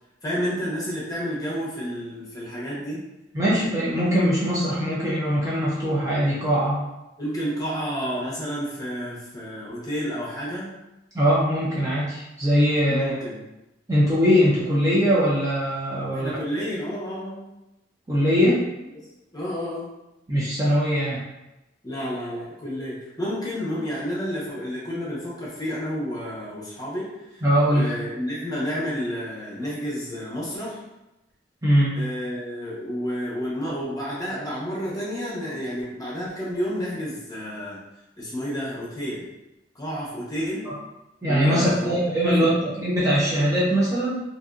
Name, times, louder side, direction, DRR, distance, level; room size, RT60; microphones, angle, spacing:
voice 1, 0.2-3.0 7.2-10.7 12.9-13.4 16.1-17.5 19.3-19.9 21.8-27.4 27.7-30.8 31.9-37.8 38.2-39.3 39.7-40.7 41.2-41.9 42.2-42.6, equal, 20° left, -7 dB, 0.9 m, -30 dB
voice 2, 3.3-6.8 11.1-13.2 13.9-16.3 18.1-18.6 20.3-21.2 27.4-28.0 31.6-31.9 41.2-44.2, equal, 20° right, -8 dB, 0.5 m, -21 dB
2.6 x 2.6 x 2.4 m, 0.95 s
head